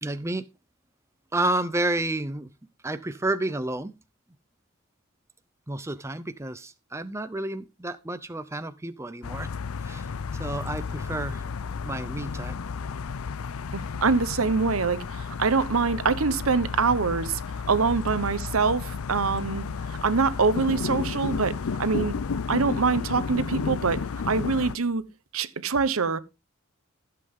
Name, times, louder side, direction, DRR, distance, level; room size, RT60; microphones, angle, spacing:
voice 1, 0.0-0.5 1.3-2.5 2.8-3.9 5.7-9.5 9.8-10.1 10.4-11.5 11.8-12.5, right 2 dB, 15° right, 0.6 m, -30 dB
sound 1, 9.2-24.8, left 5 dB, 75° left, 0.5 m, -32 dB
voice 2, 13.7-17.4 17.6-19.6 19.9-22.2 22.5-25.0 25.3-26.2, right 4 dB, 70° right, 1.0 m, -24 dB
14.5 x 7.6 x 3.6 m
head